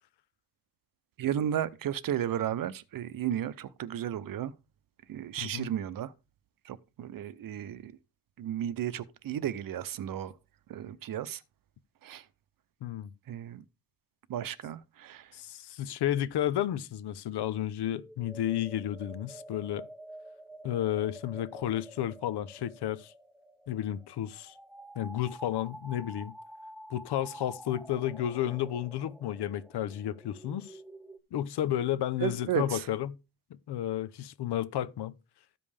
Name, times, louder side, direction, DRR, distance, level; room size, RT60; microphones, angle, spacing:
voice 1, 1.2-4.5 5.1-6.1 6.6-7.9 8.4-10.3 10.7-11.4 12.0-12.3 13.3-13.6 14.3-15.3 32.2-32.9, right 10 dB, 55° right, 0.6 m, -34 dB
voice 2, 5.4-5.7 12.8-13.1 15.3-19.9 20.6-23.1 23.7-24.5 25.0-26.3 26.9-30.8 31.3-33.2 33.7-35.1, left 11 dB, 85° left, 0.7 m, -32 dB
sound 1, 17.9-31.2, right 1 dB, ahead, 0.5 m, -49 dB
14.0 x 5.4 x 3.3 m
wide cardioid pair, 165°, 39 cm